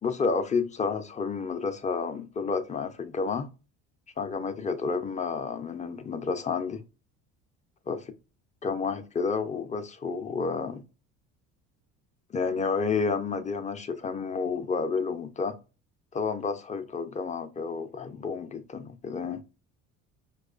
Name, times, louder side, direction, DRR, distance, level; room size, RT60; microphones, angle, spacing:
voice 1, 0.0-3.5 4.2-6.8 7.9-8.0 8.6-10.8 12.3-15.5 16.1-19.4, left 5 dB, 20° left, 0.5 m, -30 dB
4.6 x 2.3 x 2.4 m
supercardioid pair, 80°, 35 cm